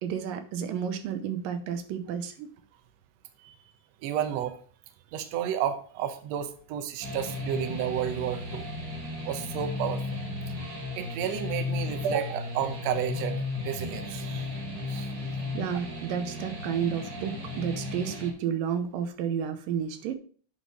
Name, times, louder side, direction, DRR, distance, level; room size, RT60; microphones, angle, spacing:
voice 1, 0.0-2.5 15.5-20.2, right 8 dB, 90° right, 8 dB, 2.6 m, -31 dB
voice 2, 4.0-4.6 5.1-8.7 9.2-10.2 10.9-14.5 14.9-15.1, right 9 dB, 70° right, 8 dB, 1.7 m, -31 dB
sound 1, 7.0-18.3, left 3 dB, 50° right, 2.5 m, -35 dB
sound 2, 7.9-9.7, right 6 dB, 30° right, 2.1 m, -50 dB
8.6 x 4.3 x 4.8 m, 0.43 s
omnidirectional pair, 3.8 m